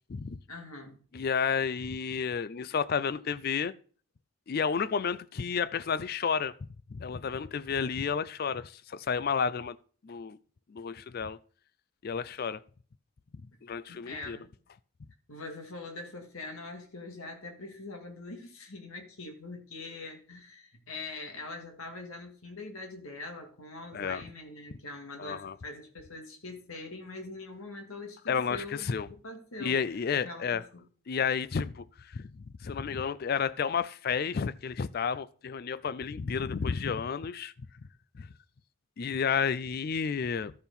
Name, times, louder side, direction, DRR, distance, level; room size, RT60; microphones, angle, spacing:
voice 1, 0.5-1.0 13.9-14.5 15.3-29.8 30.1-30.8, left 2 dB, 80° left, 2.0 m, -43 dB
voice 2, 1.1-3.7 4.5-6.5 6.9-9.8 10.0-10.4 10.7-11.4 12.0-12.6 13.6-14.4 23.9-24.2 25.2-25.6 28.3-29.1 29.6-30.6 31.1-37.5 38.1-38.3 39.0-40.5, left 6 dB, 45° left, 0.3 m, -31 dB
13.0 x 4.4 x 5.3 m
head